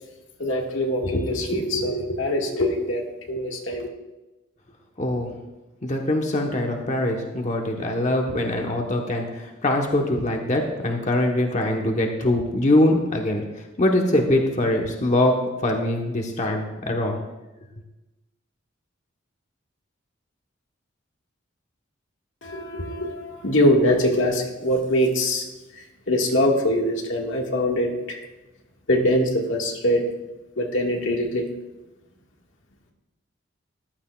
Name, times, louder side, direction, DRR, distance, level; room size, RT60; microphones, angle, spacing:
voice 1, 0.4-3.9 22.4-25.5 25.8-28.2 28.9-30.0 30.6-31.5, left 1 dB, 85° left, 0 dB, 1.8 m, -23 dB
voice 2, 5.0-5.3 5.8-13.4 13.8-15.4 15.6-17.2, left 1 dB, 40° left, 1 dB, 1.1 m, -23 dB
14.5 x 12.0 x 2.4 m, 1.0 s
head